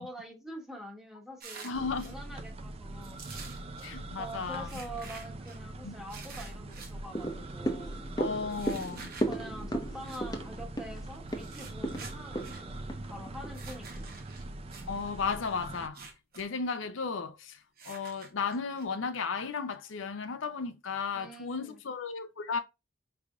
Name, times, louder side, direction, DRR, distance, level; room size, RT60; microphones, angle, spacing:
voice 1, 0.0-1.7 2.0-3.2 4.2-8.0 8.8-8.9 9.2-14.1 21.1-21.8, right 1 dB, ahead, 1.1 m, -45 dB
sound 1, 1.4-2.1 3.0-3.9 4.7-5.6 6.1-6.9 8.5-9.3 10.0-10.2 11.3-12.6 13.5-14.9 15.8-16.5 16.7-16.8 17.8-18.8, right 5 dB, 50° right, 1.0 m, -48 dB
voice 2, 1.6-2.2 3.8-4.8 5.8-5.9 8.2-9.1 14.9-16.0 16.4-22.6, left 5 dB, 75° left, 0.6 m, -34 dB
sound 2, 1.7-15.9, right 2 dB, 30° right, 0.4 m, -43 dB
sound 3, 7.1-13.6 14.0-14.1, right 1 dB, 20° left, 0.7 m, -36 dB
4.8 x 3.4 x 2.4 m
head